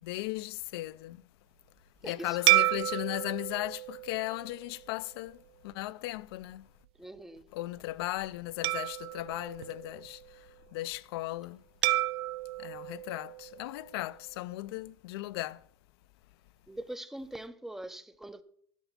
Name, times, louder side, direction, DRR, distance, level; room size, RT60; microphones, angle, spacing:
voice 1, 0.0-1.2 2.0-6.7 7.5-11.6 12.6-15.6, left 17 dB, 75° left, 0.5 m, -37 dB
voice 2, 2.0-2.7 7.0-7.5 16.7-18.4, right 1 dB, 5° right, 0.5 m, -42 dB
sound 1, 2.5-5.1 5.7-5.9 8.6-10.4 11.8-14.1, right 17 dB, 80° right, 0.5 m, -31 dB
12.5 x 6.9 x 5.6 m
supercardioid pair, 150°, 13 cm